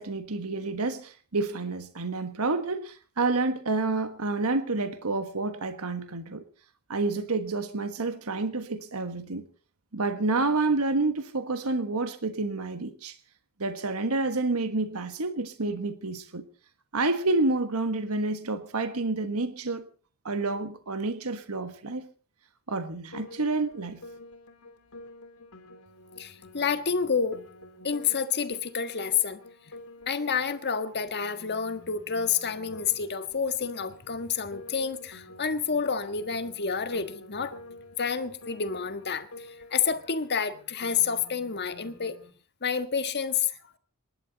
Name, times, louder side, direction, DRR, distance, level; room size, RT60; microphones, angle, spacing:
voice 1, 0.0-6.4 6.9-9.4 9.9-13.2 13.6-16.4 16.9-19.8 20.2-22.1 22.7-24.0, right 3 dB, 75° right, 1.4 m, -29 dB
Piano, 23.1-42.3, left 2 dB, 85° left, 3.8 m, -49 dB
voice 2, 26.2-27.4 27.8-29.4 30.1-37.5 38.0-42.1 42.6-43.8, left 6 dB, 50° left, 1.5 m, -29 dB
27.0 x 12.0 x 4.0 m
head